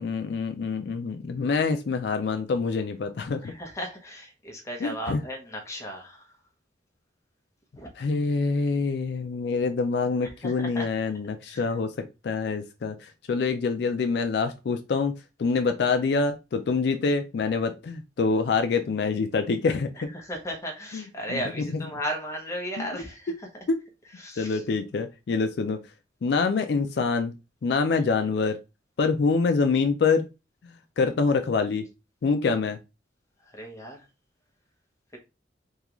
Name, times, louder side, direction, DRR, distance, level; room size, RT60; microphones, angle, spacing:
voice 1, 0.0-3.5 4.8-5.2 8.0-11.9 12.2-15.1 15.4-19.9 20.9-21.4 21.7-21.8 22.8-22.9 23.7-23.8 24.4-25.8 26.2-27.3 27.6-28.6 29.0-30.3 31.0-31.9 32.2-32.8, left 4 dB, 65° left, 7 dB, 0.3 m, -25 dB
voice 2, 3.4-6.3 7.7-7.9 10.4-10.9 11.4-11.7 20.0-23.5 24.2-24.6 27.9-28.0 33.5-34.0 35.1-35.2, equal, 15° left, 1 dB, 0.8 m, -36 dB
3.6 x 2.3 x 2.9 m, 0.27 s
head